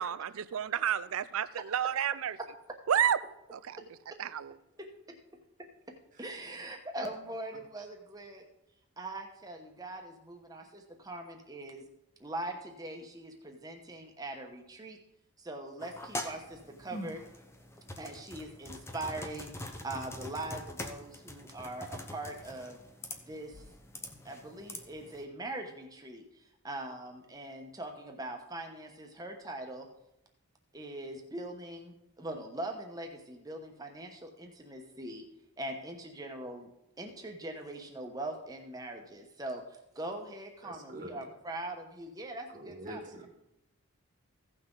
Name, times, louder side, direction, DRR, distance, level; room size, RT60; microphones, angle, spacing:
voice 1, 0.0-2.4 2.9-3.2 3.5-3.8 4.2-4.6, right 9 dB, 70° right, 0.4 m, -30 dB
voice 2, 4.8-5.2 6.2-8.5 9.0-11.8 12.2-15.0 15.4-17.2 18.0-22.8 23.3-23.6 24.2-29.9 30.7-35.2 35.6-36.7 37.0-39.6 39.9-43.3, right 1 dB, 15° right, 1.1 m, -42 dB
sound 1, 15.8-25.2, left 1 dB, 10° left, 0.6 m, -44 dB
voice 3, 40.6-41.2 42.5-43.3, right 1 dB, 35° right, 1.4 m, -45 dB
15.5 x 6.0 x 3.8 m
head